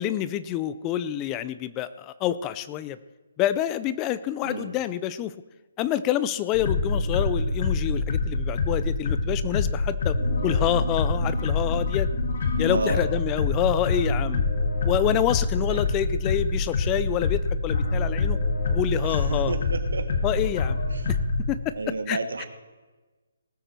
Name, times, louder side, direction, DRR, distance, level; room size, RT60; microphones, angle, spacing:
voice 1, 0.0-3.0 3.4-5.3 5.8-10.2 10.4-12.1 12.6-14.4 14.8-18.4 18.7-19.6 20.2-20.8 21.1-21.2 21.5-21.7 22.1-22.4, left 11 dB, 20° left, 15 dB, 0.4 m, -27 dB
sound 1, 6.5-21.4, left 3 dB, 50° left, 2.0 m, -25 dB
voice 2, 12.7-13.0 15.7-15.8 19.0-20.1 20.9-21.0 21.7-22.5, right 3 dB, 80° right, 8 dB, 1.7 m, -31 dB
19.0 x 8.0 x 4.4 m, 1.2 s
hypercardioid pair, 160°, 0 cm